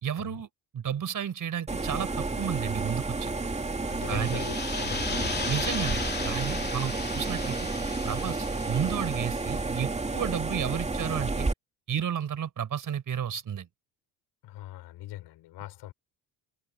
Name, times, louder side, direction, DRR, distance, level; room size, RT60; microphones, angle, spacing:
voice 1, 0.0-3.3 4.1-4.5 5.5-7.6 8.1-11.5 11.9-13.7, right 8 dB, 45° right, 5.2 m, -32 dB
sound 1, 1.7-11.5, right 3 dB, 15° right, 2.4 m, -31 dB
voice 2, 3.9-5.5 6.6-6.7 14.4-15.9, left 15 dB, 70° left, 5.2 m, -42 dB
sound 2, 3.9-9.6, left 4 dB, 25° left, 3.0 m, -36 dB
cardioid pair, 95°, 42 cm